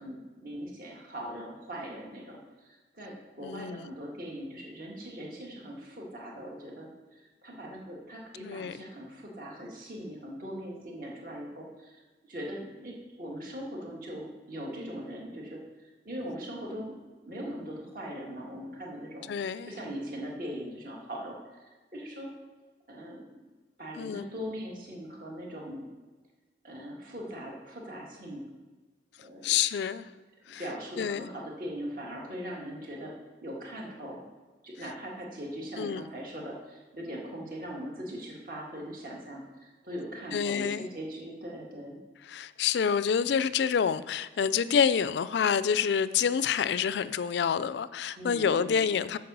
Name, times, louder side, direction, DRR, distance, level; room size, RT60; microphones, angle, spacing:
voice 1, 0.0-6.9 7.4-12.0 12.3-19.3 19.7-21.4 21.9-22.3 22.9-23.4 23.8-25.9 26.6-28.4 29.2-29.5 30.6-33.1 33.4-34.2 34.6-42.0 48.2-48.9, equal, 50° right, -2 dB, 1.9 m, -40 dB
voice 2, 3.4-3.9 8.4-8.8 19.3-19.7 24.0-24.3 29.4-30.0 30.5-30.6 31.0-31.3 35.8-36.0 40.3-40.9 42.3-49.2, left 7 dB, 75° left, 15 dB, 0.3 m, -27 dB
7.8 x 5.3 x 6.8 m, 1.3 s
head